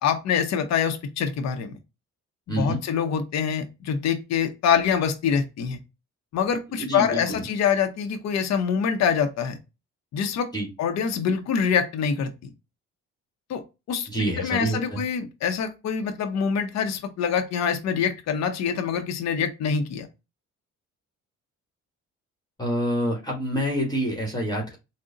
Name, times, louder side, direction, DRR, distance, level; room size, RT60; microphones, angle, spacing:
voice 1, 0.0-1.7 2.5-5.8 6.3-9.6 10.1-10.5 10.8-12.5 13.5-13.6 13.9-14.1 14.4-20.1, left 7 dB, 60° left, 0.6 m, -25 dB
voice 2, 6.7-7.4 10.5-10.7 14.1-15.0 22.6-24.8, right 1 dB, 15° left, 1.2 m, -27 dB
3.8 x 2.1 x 3.8 m
cardioid pair, 90°, 30 cm